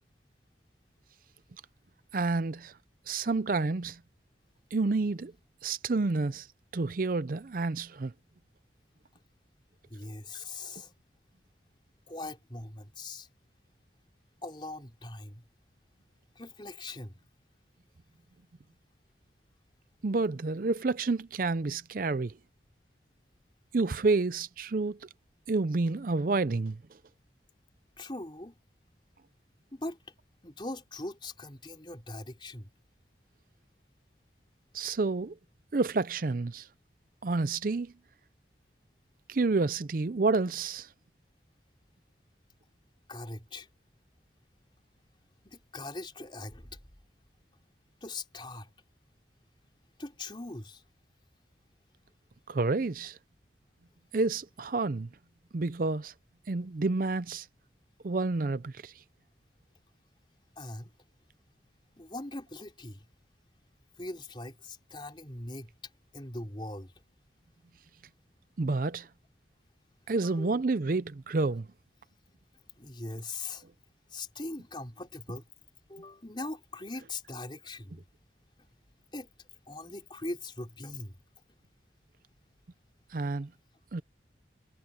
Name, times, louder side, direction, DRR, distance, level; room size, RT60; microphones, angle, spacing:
voice 1, 2.1-2.7 3.1-4.0 4.7-5.3 5.6-6.5 6.7-8.1 20.0-22.3 23.7-25.1 25.5-26.8 34.7-35.4 35.7-36.7 37.2-37.9 39.3-40.9 52.5-53.2 54.1-55.1 55.5-56.1 56.5-57.5 58.0-58.9 68.6-69.1 70.1-71.7 83.1-83.5 83.9-84.0, right 3 dB, 50° right, 0.5 m, -29 dB
voice 2, 9.9-10.9 12.1-13.3 14.4-15.4 16.4-17.2 28.0-28.6 29.7-30.0 30.4-32.7 43.1-43.7 45.4-46.8 48.0-48.7 50.0-50.8 60.6-60.9 62.0-63.1 64.0-65.7 66.1-66.9 70.2-70.5 72.6-73.6 74.1-75.5 75.9-78.0 79.1-79.3 79.7-81.2, left 2 dB, 25° left, 3.8 m, -41 dB
head